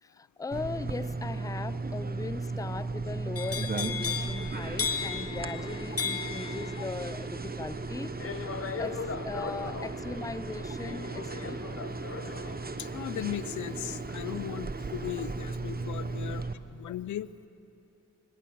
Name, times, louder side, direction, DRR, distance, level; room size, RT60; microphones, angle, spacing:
voice 1, 0.0-8.5 8.8-11.6 16.9-17.0, left 4 dB, 10° left, 18 dB, 0.5 m, -39 dB
sound 1, 0.5-16.5, right 3 dB, 30° right, 1.2 m, -36 dB
sound 2, 3.4-15.3 15.7-16.1, left 6 dB, 50° left, 1.1 m, -38 dB
voice 2, 12.8-17.3, left 12 dB, 80° left, 17 dB, 0.6 m, -37 dB
25.0 x 17.5 x 6.9 m, 2.8 s
cardioid pair, 45°, 29 cm